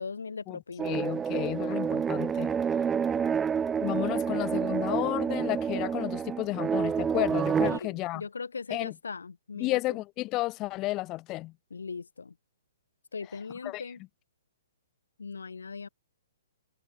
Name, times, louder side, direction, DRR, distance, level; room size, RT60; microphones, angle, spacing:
voice 1, 0.0-1.0 7.6-10.0 11.7-12.3 13.1-14.0 15.2-15.9, left 5 dB, 85° left, 3.5 m, -39 dB
voice 2, 0.8-2.5 3.8-8.2 8.7-8.9 9.6-11.5 13.6-13.8, left 19 dB, 30° left, 3.9 m, -32 dB
sound 1, 0.8-7.8, right 7 dB, 15° right, 0.3 m, -28 dB
hypercardioid pair, 135°, 0 cm